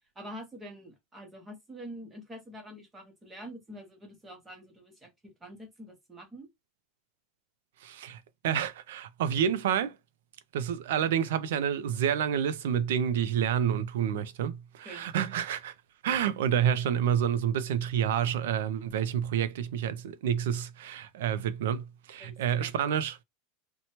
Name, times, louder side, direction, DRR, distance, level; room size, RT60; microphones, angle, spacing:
voice 1, 0.2-6.5 14.8-15.1 22.2-22.7, equal, 10° right, 0.8 m, -46 dB
voice 2, 7.8-9.9 10.5-15.7 16.0-23.2, right 9 dB, 85° right, 0.4 m, -29 dB
2.9 x 2.1 x 2.8 m
supercardioid pair, 175°, 0 cm